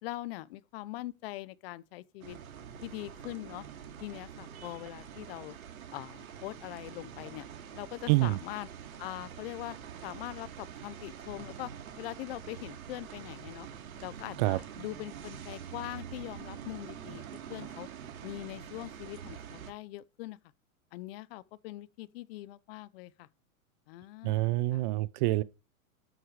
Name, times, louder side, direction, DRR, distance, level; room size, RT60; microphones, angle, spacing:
voice 1, 0.0-2.4 2.8-3.6 4.0-5.6 5.9-7.5 7.7-8.7 9.0-9.8 10.0-11.7 12.0-13.7 14.0-17.2 17.5-17.9 18.2-20.4 20.9-23.3 23.9-24.8, left 17 dB, 45° left, 0.9 m, -42 dB
sound 1, 2.2-19.7, right 8 dB, 75° right, 2.9 m, -46 dB
voice 2, 8.1-8.4 14.4-14.6 24.2-25.4, right 19 dB, 35° right, 0.5 m, -26 dB
13.0 x 8.1 x 4.8 m
hypercardioid pair, 130°, 42 cm